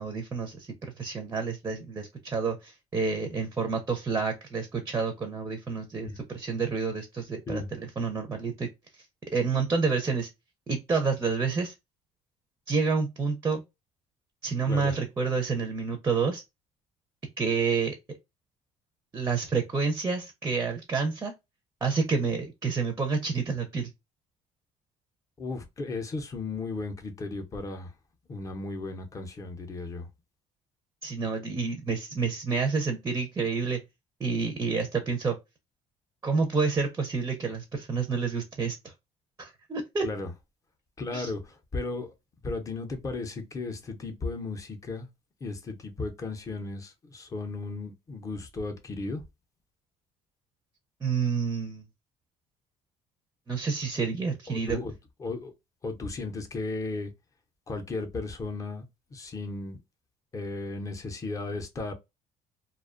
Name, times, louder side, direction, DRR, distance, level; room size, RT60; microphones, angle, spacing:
voice 1, 0.0-8.7 9.3-10.3 10.7-11.7 12.7-13.6 14.4-16.4 17.4-18.0 19.1-21.3 21.8-23.9 31.0-33.8 34.2-35.4 36.2-38.9 39.4-40.1 41.1-41.3 51.0-51.8 53.5-54.8, right 4 dB, 20° right, 0.5 m, -29 dB
voice 2, 25.4-27.9 28.3-30.1 40.0-40.3 41.0-42.1 42.4-45.1 45.4-49.2 54.5-54.9 55.2-55.5 55.8-57.1 57.7-58.8 59.1-59.8 60.3-61.9, left 3 dB, 25° left, 0.6 m, -35 dB
2.4 x 2.2 x 2.4 m
cardioid pair, 140°, 13 cm